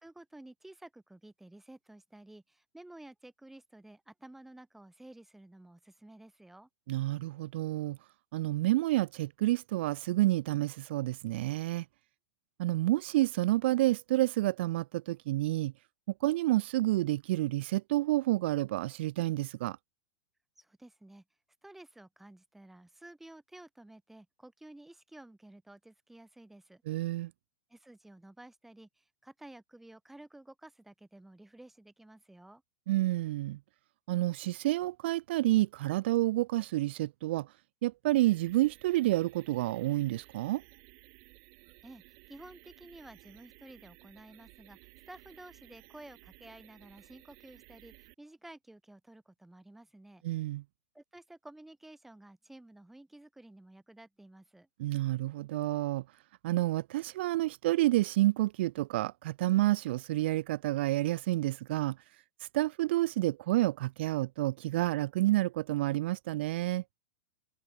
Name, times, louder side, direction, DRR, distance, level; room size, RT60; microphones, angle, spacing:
voice 1, 0.0-6.7 20.6-21.2 21.6-26.8 27.7-32.6 41.8-44.8 45.1-50.2 50.9-54.7, right 1 dB, 5° right, 1.8 m, -53 dB
voice 2, 6.9-8.0 8.3-11.8 12.6-15.7 16.2-19.8 26.9-27.3 32.9-33.6 34.1-37.5 37.8-40.6 50.2-50.6 54.8-56.0 56.4-62.0 62.5-66.8, right 17 dB, 60° right, 0.5 m, -29 dB
sound 1, 38.1-48.1, right 34 dB, 45° right, 2.3 m, -57 dB
supercardioid pair, 150°, 7 cm